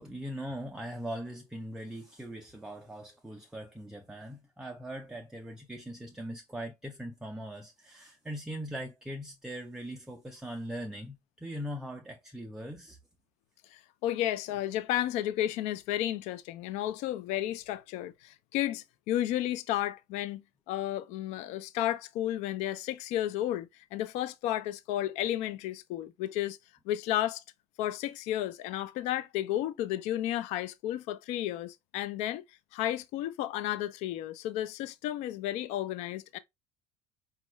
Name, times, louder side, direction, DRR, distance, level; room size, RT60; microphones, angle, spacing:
voice 1, 0.0-13.0, equal, 5° right, 0.4 m, -40 dB
voice 2, 13.7-26.6 26.9-27.4 27.8-32.4 32.7-36.4, left 13 dB, 65° left, 0.4 m, -32 dB
4.5 x 2.3 x 3.0 m
cardioid pair, 135°, 12 cm